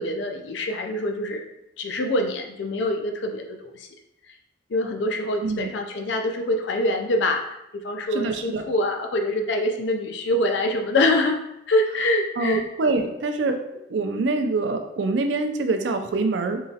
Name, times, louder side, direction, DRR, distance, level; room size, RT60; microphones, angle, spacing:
voice 1, 0.0-1.5 1.8-3.9 4.7-7.6 7.8-11.4 11.7-12.7, left 1 dB, 70° left, 4 dB, 0.5 m, -25 dB
voice 2, 8.1-8.6 12.4-13.6 13.9-16.6, right 3 dB, 70° right, 6 dB, 0.4 m, -25 dB
3.7 x 2.9 x 2.8 m, 0.84 s
head